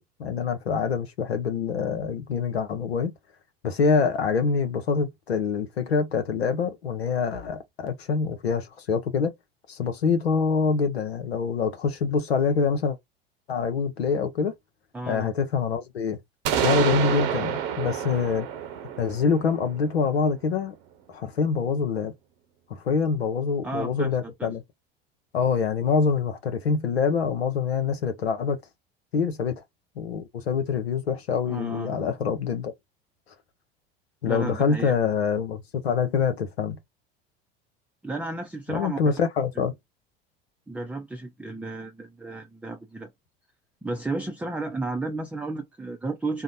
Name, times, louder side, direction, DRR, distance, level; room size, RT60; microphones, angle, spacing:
voice 1, 0.0-3.1 3.6-9.3 9.7-13.0 13.5-14.5 15.1-16.2 16.6-18.5 19.0-20.7 21.1-22.1 22.7-24.6 25.3-28.6 29.1-29.6 30.0-32.7 34.2-36.8 38.7-39.7, left 5 dB, 90° left, 0.6 m, -25 dB
voice 2, 14.9-15.4 23.6-24.5 31.5-31.9 34.2-34.9 38.0-39.0 39.6-39.7 40.7-43.1 43.8-46.4, right 2 dB, 5° right, 0.5 m, -33 dB
sound 1, 16.5-20.3, right 9 dB, 60° right, 0.8 m, -28 dB
2.8 x 2.0 x 2.4 m
hypercardioid pair, 75°, 30 cm